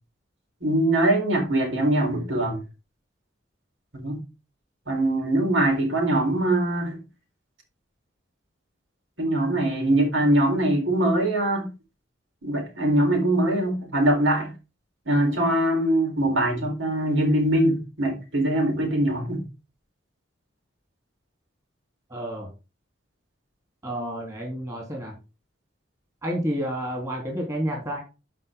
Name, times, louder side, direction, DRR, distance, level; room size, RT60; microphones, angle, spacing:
voice 1, 0.6-2.6 3.9-4.2 4.9-7.0 9.2-11.7 12.4-14.5 15.1-19.4, right 1 dB, 85° right, 4.2 m, -22 dB
voice 2, 22.1-22.5 23.8-25.1 26.2-28.0, equal, 15° right, 3.2 m, -30 dB
12.5 x 5.2 x 3.7 m
head